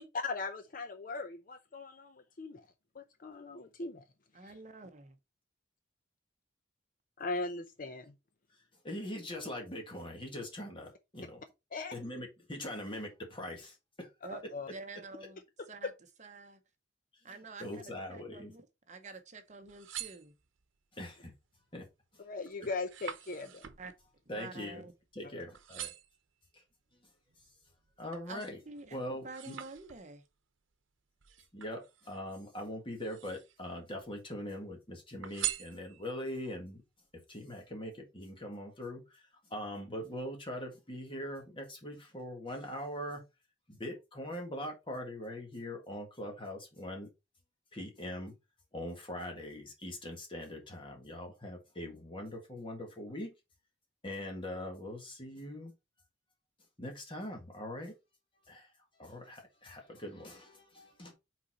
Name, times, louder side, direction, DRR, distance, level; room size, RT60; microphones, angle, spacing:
voice 1, 0.1-2.6 3.0-4.0 7.2-8.1 11.7-11.9 14.3-14.7 22.3-23.7 25.2-25.4, left 3 dB, 45° left, 0.5 m, -39 dB
voice 2, 4.3-5.1 14.2-14.4 14.7-15.4 15.7-15.9 16.2-16.6 17.2-20.3 23.4-23.5 23.8-23.9 24.3-24.9 28.3-30.2, right 3 dB, 40° right, 0.8 m, -48 dB
voice 3, 8.8-11.4 11.9-14.1 17.6-18.5 20.9-21.3 21.7-21.8 22.1-22.2 24.3-24.8 25.1-25.9 26.5-26.6 28.0-28.6 28.9-29.6 31.5-36.8 37.3-43.2 43.7-47.1 47.7-48.3 48.7-53.3 54.0-55.7 56.8-57.9 58.5-58.7 59.0-61.1, left 1 dB, 25° left, 1.8 m, -42 dB
sound 1, 19.5-20.8 21.4-21.8 22.1-25.2 25.5-26.2 26.9-28.3 28.8-30.3 31.2-32.3 32.9-33.7 34.0-34.7 35.2-36.3 36.8-36.9, right 12 dB, 80° right, 0.8 m, -44 dB
5.4 x 4.2 x 4.2 m
head